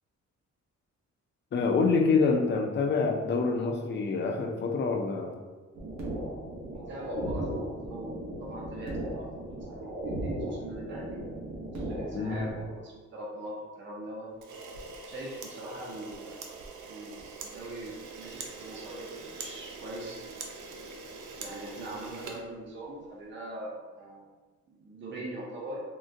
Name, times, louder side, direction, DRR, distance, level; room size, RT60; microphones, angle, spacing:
voice 1, 1.5-5.3 12.1-12.5, left 4 dB, 40° left, 2 dB, 0.4 m, -26 dB
sound 1, 5.7-12.7, right 1 dB, 65° right, 0.8 m, -36 dB
voice 2, 6.7-11.2 11.7-14.3 15.0-16.4 16.9-20.2 21.4-24.3 24.7-25.8, right 1 dB, 40° right, -3 dB, 0.6 m, -42 dB
Camera, 14.4-23.1, right 4 dB, 85° right, 0.5 m, -43 dB
3.7 x 2.1 x 2.5 m, 1.3 s
wide cardioid pair, 135°, 30 cm